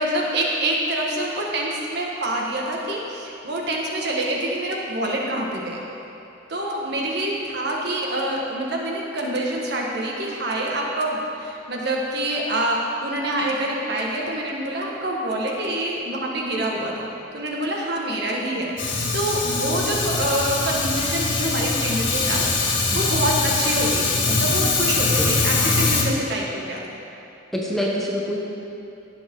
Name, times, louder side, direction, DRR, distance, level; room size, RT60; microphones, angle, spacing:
voice 1, 0.0-5.8 6.5-17.1 17.3-26.8, right 1 dB, 60° right, -2 dB, 1.6 m, -26 dB
Fire, 18.8-26.0, left 3 dB, 75° left, 1.7 m, -22 dB
voice 2, 27.5-28.4, equal, ahead, -4 dB, 0.9 m, -26 dB
16.5 x 7.2 x 3.8 m, 2.8 s
head